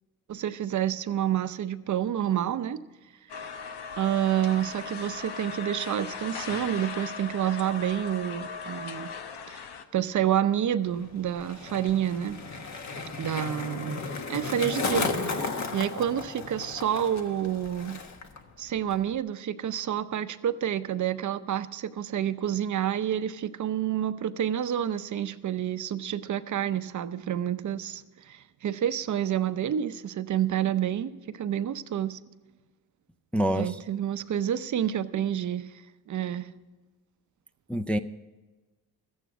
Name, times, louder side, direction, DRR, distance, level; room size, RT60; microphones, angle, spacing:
voice 1, 0.3-2.8 4.0-9.1 9.5-9.6 9.9-12.4 13.2-18.0 18.6-32.2 33.5-35.7 36.1-36.5, right 10 dB, 50° right, 12 dB, 0.7 m, -29 dB
sound 1, 3.3-9.8, left 6 dB, 85° left, 1.1 m, -38 dB
Skateboard, 10.8-18.4 18.6-19.2, left 4 dB, 45° left, 1.4 m, -34 dB
voice 2, 33.3-33.8 37.7-38.0, equal, 5° left, 4 dB, 0.4 m, -26 dB
13.5 x 9.3 x 6.1 m, 1.2 s
cardioid pair, 95°, 38 cm